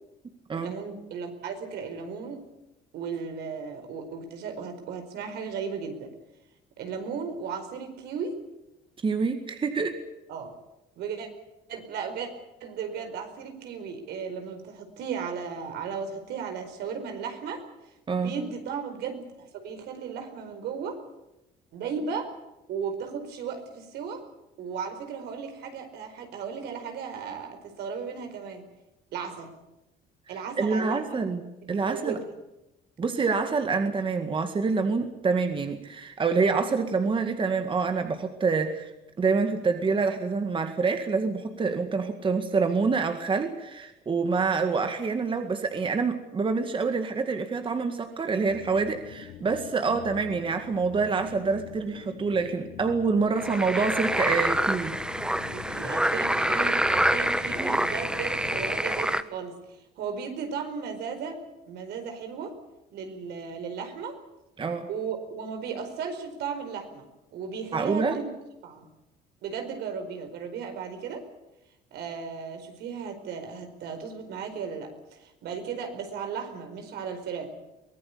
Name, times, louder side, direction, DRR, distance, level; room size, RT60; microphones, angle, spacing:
voice 1, 0.5-2.4 2.9-6.1 6.8-8.3 10.3-10.5 11.0-11.3 11.7-12.3 12.6-17.6 18.1-21.0 21.7-22.3 22.7-24.2 24.6-28.6 29.1-29.5 30.3-31.2 31.6-32.2 44.3-44.6 49.8-50.0 55.5-62.5 62.9-64.2 64.9-68.3 68.6-68.9 69.4-71.2 71.9-77.5, right 6 dB, 75° right, 6 dB, 4.7 m, -35 dB
voice 2, 9.0-10.0 18.1-18.3 30.6-31.4 31.7-32.2 33.0-38.9 39.2-55.0 64.6-64.9 67.7-68.2, right 4 dB, 30° right, 7 dB, 2.0 m, -26 dB
sound 1, 48.5-58.8, left 13 dB, 85° left, 1.4 m, -44 dB
sound 2, 53.4-59.2, right 1 dB, 5° right, 1.1 m, -26 dB
23.5 x 17.5 x 8.5 m, 0.94 s
cardioid pair, 110°, 17 cm